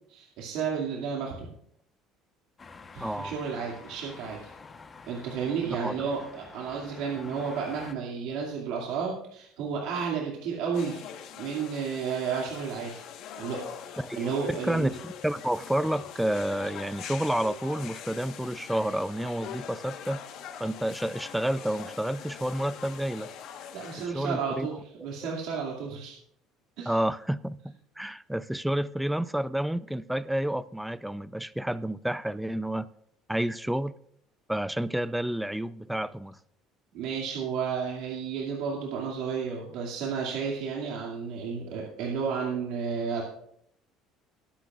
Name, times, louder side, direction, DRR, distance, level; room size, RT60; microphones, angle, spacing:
voice 1, 0.1-1.5 2.9-4.4 5.1-11.0 11.4-13.0 13.4-13.6 13.9-14.9 23.7-26.1 26.8-27.0 36.9-43.2, right 6 dB, 80° right, 2.3 m, -32 dB
sound 1, 2.6-7.9, left 4 dB, 25° left, 1.0 m, -48 dB
voice 2, 3.0-3.4 5.8-5.9 14.0-20.2 20.6-23.3 24.1-24.7 26.9-32.9 33.3-33.9 34.5-36.4, right 1 dB, 5° right, 0.4 m, -30 dB
sound 2, 10.7-24.1, left 9 dB, 65° left, 1.3 m, -43 dB
20.5 x 10.0 x 2.4 m
cardioid pair, 125°, 0 cm